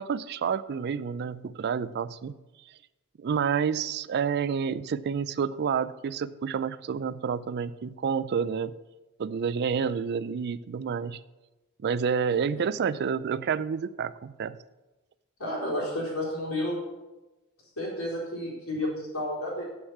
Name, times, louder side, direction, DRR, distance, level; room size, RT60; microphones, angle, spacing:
voice 1, 0.0-2.4 3.2-8.7 9.2-11.2 11.8-14.6, right 6 dB, 50° right, 17 dB, 0.4 m, -29 dB
voice 2, 15.4-16.8 17.8-19.6, left 1 dB, 90° left, -4 dB, 3.9 m, -31 dB
8.0 x 6.5 x 7.2 m, 1.1 s
head